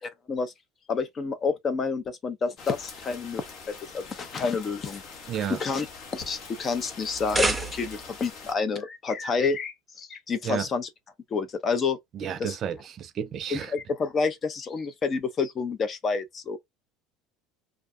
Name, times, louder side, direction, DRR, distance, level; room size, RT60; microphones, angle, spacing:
voice 1, 0.9-3.4 3.9-5.0 5.5-5.9 6.1-10.9 11.3-12.0 12.4-12.5 13.5-16.6, left 5 dB, 35° left, 0.6 m, -29 dB
sound 1, 2.6-8.5, left 5 dB, 65° left, 1.0 m, -44 dB
voice 2, 5.3-5.6 10.4-10.6 12.1-13.7, right 9 dB, 45° right, 0.5 m, -32 dB
sound 2, 7.0-8.2, right 2 dB, 10° right, 0.7 m, -28 dB
2.4 x 2.3 x 2.6 m
supercardioid pair, 90°, 0 cm